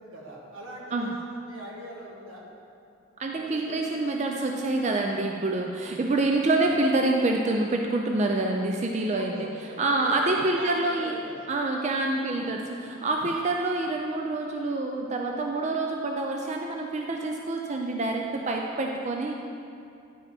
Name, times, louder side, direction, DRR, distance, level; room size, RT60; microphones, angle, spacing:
voice 1, 0.0-2.4 3.4-3.8 6.5-6.6 9.1-11.3 12.2-12.5, right 1 dB, 85° right, -3 dB, 1.5 m, -43 dB
voice 2, 3.2-9.5 9.8-11.2 11.5-19.3, right 2 dB, 35° right, 1 dB, 0.4 m, -27 dB
10.0 x 5.0 x 4.3 m, 2.5 s
head